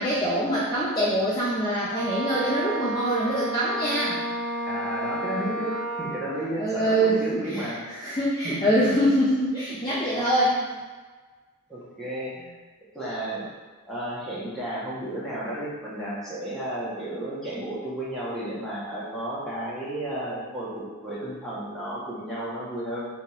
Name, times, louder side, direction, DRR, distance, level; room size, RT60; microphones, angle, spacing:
voice 1, 0.0-4.2 6.6-10.6, right 1 dB, 20° left, -9 dB, 0.6 m, -24 dB
Wind instrument woodwind instrument, 1.9-6.4, right 1 dB, 55° right, 0.7 m, -31 dB
voice 2, 4.7-7.8 8.6-8.9 11.7-12.5 12.9-13.5 13.9-23.1, right 1 dB, ahead, -10 dB, 1.3 m, -33 dB
3.7 x 3.0 x 4.7 m, 1.4 s
head